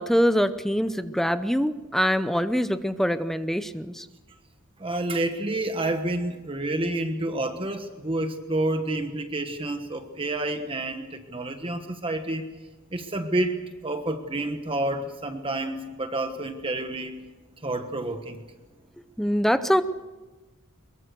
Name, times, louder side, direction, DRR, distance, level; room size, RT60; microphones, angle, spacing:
voice 1, 0.0-4.1 19.2-19.8, equal, ahead, 11 dB, 0.7 m, -24 dB
voice 2, 4.8-12.5 12.9-17.2 17.6-18.4, right 1 dB, 25° right, 7 dB, 1.2 m, -29 dB
23.5 x 22.5 x 6.8 m, 1.2 s
head